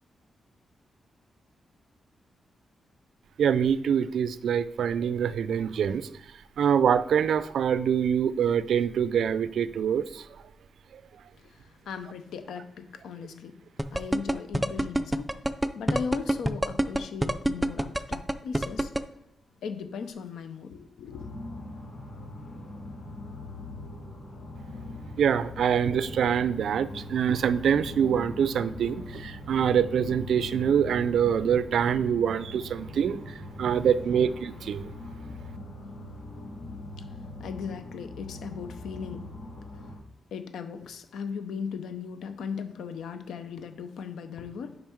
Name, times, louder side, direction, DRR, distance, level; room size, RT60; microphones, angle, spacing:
voice 1, 3.4-6.1 6.6-10.2 25.2-34.9, right 8 dB, 80° right, 0.3 m, -25 dB
voice 2, 11.4-13.6 13.9-15.3 15.7-18.9 19.6-21.3 37.4-39.3 40.3-44.8, left 6 dB, 90° left, 0.7 m, -38 dB
sound 1, 13.8-19.0, right 1 dB, 5° right, 0.4 m, -25 dB
sound 2, 21.1-40.0, left 2 dB, 70° left, 2.0 m, -41 dB
5.5 x 5.3 x 4.5 m
cardioid pair, 90°, 0 cm